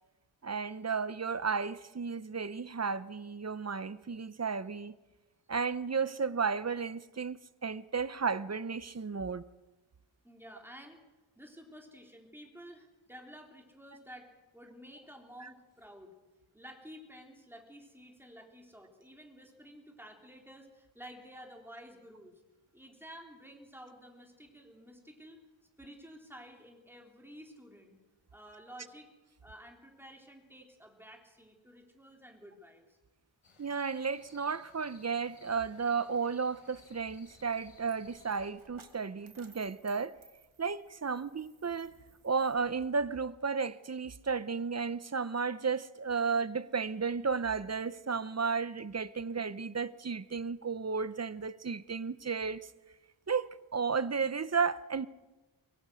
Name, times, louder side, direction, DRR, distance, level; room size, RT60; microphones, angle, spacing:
voice 1, 0.4-4.9 5.5-9.4 15.4-15.5 33.6-40.2 40.6-41.9 42.2-52.7 53.3-55.1, right 5 dB, 30° right, 0.7 m, -33 dB
voice 2, 10.2-11.0 11.4-16.1 16.5-22.4 22.7-25.4 25.8-28.0 28.3-29.1 29.4-33.0, equal, 5° right, 3.7 m, -52 dB
sound 1, 33.4-38.5, left 4 dB, 90° left, 4.1 m, -61 dB
Coin (dropping), 36.8-42.8, right 5 dB, 75° right, 2.3 m, -62 dB
23.0 x 22.5 x 6.3 m
wide cardioid pair, 125°, 49 cm